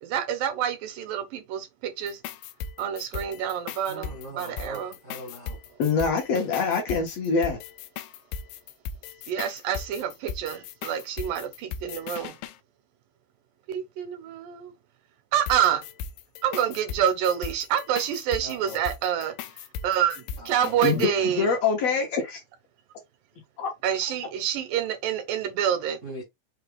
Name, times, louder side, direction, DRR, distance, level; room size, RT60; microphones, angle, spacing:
voice 1, 0.0-2.2 2.8-5.0 9.2-12.4 13.7-14.7 15.3-15.9 16.4-21.5 23.8-26.0, right 9 dB, 85° right, 2.7 m, -27 dB
sound 1, 2.0-12.6 15.5-21.1, left 7 dB, 85° left, 2.2 m, -38 dB
voice 2, 3.8-5.6 18.4-18.8 20.4-20.8 21.1-21.5 26.0-26.2, right 1 dB, 50° right, 0.9 m, -41 dB
voice 3, 5.8-7.6 20.8-21.1 21.4-22.4 23.6-23.7, left 5 dB, 65° left, 1.8 m, -24 dB
5.8 x 2.4 x 3.5 m
omnidirectional pair, 3.9 m